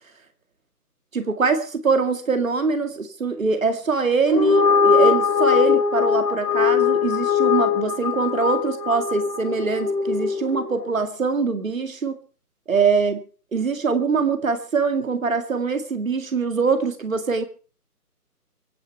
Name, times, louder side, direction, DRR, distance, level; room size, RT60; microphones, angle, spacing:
voice 1, 1.1-12.2 12.7-13.2 13.5-17.4, right 4 dB, 55° right, 8 dB, 2.1 m, -23 dB
sound 1, 4.2-10.8, left 6 dB, 90° left, 2.6 m, -21 dB
24.5 x 9.0 x 4.5 m, 0.37 s
figure-of-eight pair, 165°, 47 cm